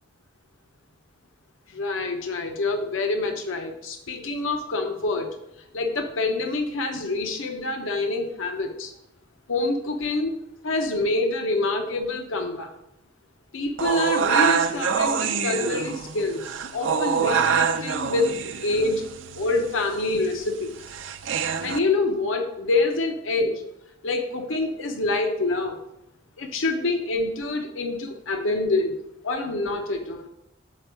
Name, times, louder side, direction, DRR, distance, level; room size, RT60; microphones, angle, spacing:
voice 1, 1.7-5.4 5.7-8.9 9.5-10.3 10.6-12.7 13.5-19.1 19.4-20.7 21.6-23.6 24.0-25.8 26.4-30.3, left 2 dB, 90° left, 5 dB, 0.7 m, -26 dB
sound 1, 13.8-21.8, right 6 dB, 75° right, 0.5 m, -26 dB
6.5 x 4.4 x 4.7 m, 0.84 s
head